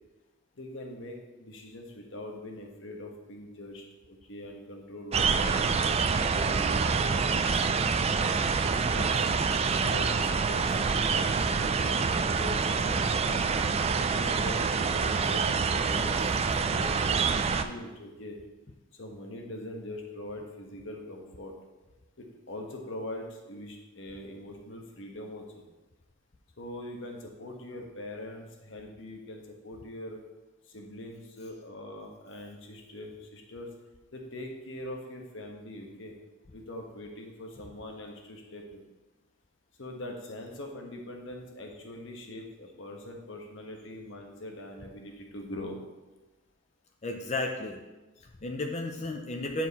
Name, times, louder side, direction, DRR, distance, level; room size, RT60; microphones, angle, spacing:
voice 1, 0.5-7.1 8.7-9.3 9.8-13.6 14.2-18.4 18.9-21.5 22.2-25.7 26.6-30.2 30.6-33.7 34.1-36.1 36.5-38.9 39.8-45.8, left 1 dB, 60° left, 2 dB, 1.2 m, -42 dB
sound 1, 5.1-17.6, right 5 dB, 30° right, 0.3 m, -26 dB
voice 2, 47.0-47.8 48.2-49.7, left 2 dB, 30° left, 2 dB, 0.5 m, -33 dB
9.2 x 4.6 x 4.1 m, 1.1 s
head